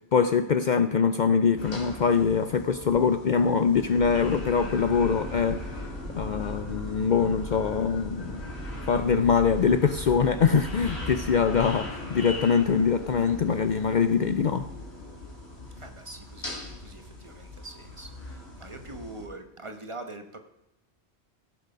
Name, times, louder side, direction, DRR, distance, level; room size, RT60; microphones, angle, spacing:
voice 1, 0.1-5.6 6.2-8.4 8.9-14.7, left 6 dB, 55° left, 10 dB, 0.6 m, -23 dB
sound 1, 1.6-19.3, left 2 dB, 80° left, 3.3 m, -40 dB
sound 2, 4.0-11.8, right 1 dB, 10° right, 1.5 m, -39 dB
voice 2, 15.8-18.1 18.6-20.4, right 2 dB, 30° right, 6 dB, 1.1 m, -43 dB
17.0 x 6.6 x 5.1 m, 0.92 s
omnidirectional pair, 1.1 m